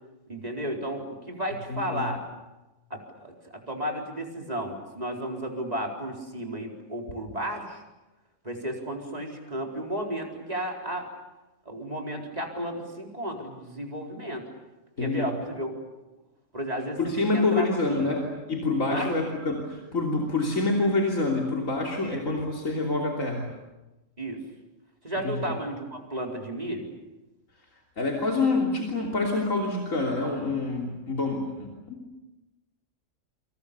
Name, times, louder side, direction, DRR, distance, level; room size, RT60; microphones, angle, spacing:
voice 1, 0.3-2.2 2.9-7.8 8.4-11.1 11.7-14.5 15.0-15.7 16.5-18.1 18.9-19.1 22.0-22.2 24.2-24.4 25.0-26.9, right 1 dB, 30° right, 1 dB, 4.5 m, -33 dB
voice 2, 1.7-2.1 15.0-15.3 17.0-23.5 25.2-25.5 28.0-32.0, left 3 dB, 85° left, -1 dB, 3.6 m, -27 dB
28.5 x 26.0 x 6.9 m, 1.0 s
omnidirectional pair, 1.3 m